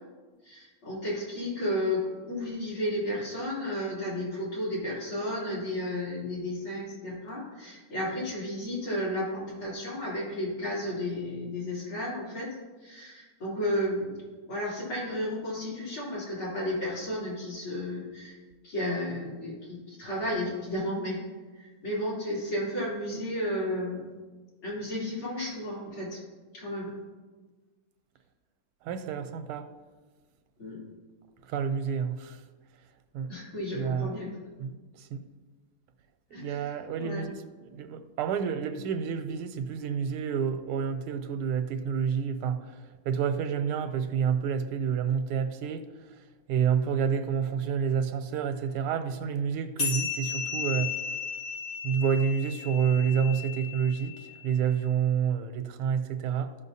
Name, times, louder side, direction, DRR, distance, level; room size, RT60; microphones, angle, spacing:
voice 1, 0.4-12.6 12.8-14.2 14.5-18.4 18.6-21.2 21.5-24.1 24.6-26.2 26.5-27.0 30.6-30.8 33.3-34.3 36.3-37.2, left 1 dB, 65° left, -7 dB, 3.7 m, -33 dB
voice 2, 28.8-29.7 31.5-32.4 33.1-33.3 33.7-34.1 34.6-34.7 35.0-35.2 36.3-37.4 37.7-42.6 43.1-45.8 46.5-50.9 51.8-56.5, right 7 dB, 90° right, 9 dB, 1.5 m, -29 dB
sound 1, 49.8-54.7, left 6 dB, 80° left, 2.8 m, -35 dB
14.5 x 5.6 x 2.7 m, 1.3 s
omnidirectional pair, 2.4 m